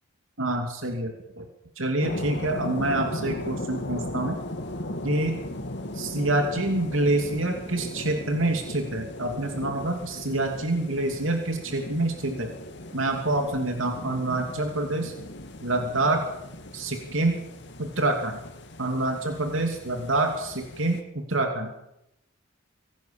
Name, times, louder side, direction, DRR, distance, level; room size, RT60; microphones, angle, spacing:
voice 1, 0.4-1.5 1.8-4.4 5.0-5.4 5.9-12.5 12.9-15.1 15.6-16.2 16.7-17.4 17.8-18.4 18.8-21.7, right 2 dB, 80° right, 4 dB, 2.9 m, -27 dB
sound 1, 2.0-21.0, left 1 dB, 60° left, 2.7 m, -37 dB
24.5 x 18.0 x 7.2 m, 0.85 s
head